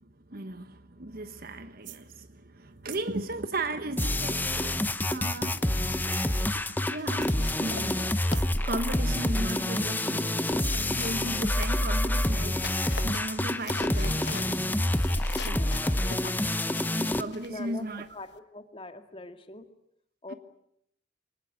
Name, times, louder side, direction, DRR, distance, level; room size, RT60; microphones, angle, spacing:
voice 1, 0.0-5.7 6.0-6.3 6.9-12.6 13.0-14.9 15.3-15.7 17.0-18.1 20.3-20.4, right 2 dB, 50° right, 1.2 m, -37 dB
sound 1, 1.3-1.5 1.8-2.2 2.9-3.3 3.9-4.2 5.1-5.5 6.1-6.4 7.2-7.6 8.2-8.5 9.5-9.9 10.6-10.8, right 14 dB, 85° right, 1.6 m, -46 dB
Dubstep FL Studio + Vital Test, 4.0-17.2, left 1 dB, 10° left, 0.9 m, -27 dB
sound 2, 5.6-6.0 6.3-6.6 7.0-12.1 12.5-18.4, left 5 dB, 65° left, 1.3 m, -45 dB
voice 2, 15.5-16.1 17.5-19.7 20.2-20.3, left 2 dB, 30° left, 2.1 m, -43 dB
24.5 x 20.0 x 9.6 m
head